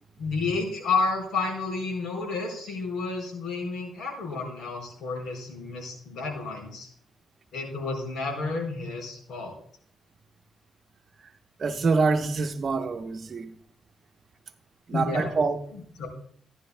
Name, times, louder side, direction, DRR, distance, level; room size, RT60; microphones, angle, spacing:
voice 1, 0.2-6.9 7.5-9.6 14.9-15.3 15.7-16.1, left 3 dB, 80° left, 4.5 m, -31 dB
voice 2, 11.6-13.5 14.9-15.6, right 4 dB, 45° right, 1.0 m, -25 dB
14.5 x 11.0 x 2.2 m
cardioid pair, 105°, 0 cm